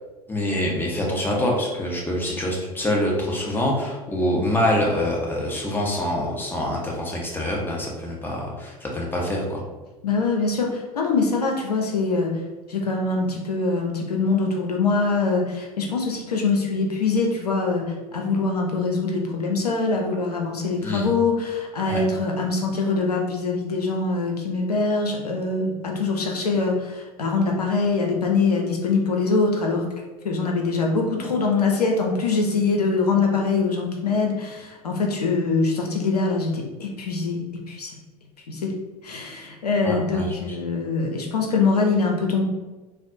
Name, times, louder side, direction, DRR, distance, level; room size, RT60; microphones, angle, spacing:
voice 1, 0.3-9.6 20.8-21.1 21.8-22.0 39.8-40.3, left 1 dB, 10° left, -2 dB, 0.9 m, -25 dB
voice 2, 10.0-12.3 12.7-29.9 30.2-37.4 37.7-37.9 38.5-38.7 39.0-42.4, left 4 dB, 85° left, 1 dB, 0.5 m, -23 dB
4.1 x 2.0 x 2.6 m, 1.2 s
figure-of-eight pair, 80°, 19 cm